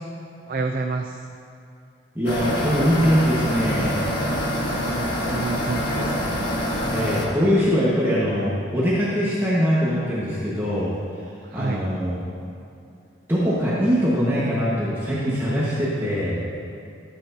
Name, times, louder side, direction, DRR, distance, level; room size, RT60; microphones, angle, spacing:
voice 1, 0.5-1.3 4.7-6.5 11.4-11.9, right 3 dB, 50° right, 3 dB, 0.4 m, -30 dB
voice 2, 2.1-4.1 6.8-10.9 11.5-12.2 13.3-16.4, equal, 10° right, -8 dB, 1.3 m, -22 dB
sound 1, 2.3-7.3, equal, 75° left, 1.3 m, -25 dB
14.0 x 8.1 x 2.7 m, 2.5 s
head